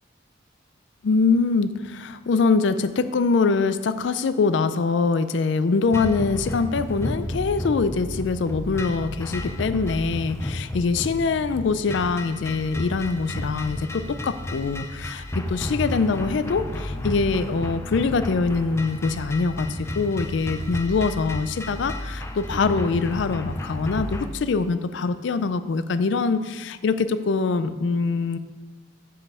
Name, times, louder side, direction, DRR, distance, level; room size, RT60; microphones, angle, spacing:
voice 1, 1.0-28.4, left 4 dB, 65° left, 12 dB, 0.4 m, -24 dB
sound 1, 5.9-24.3, left 1 dB, 15° left, 0.5 m, -32 dB
6.5 x 5.4 x 7.2 m, 1.3 s
head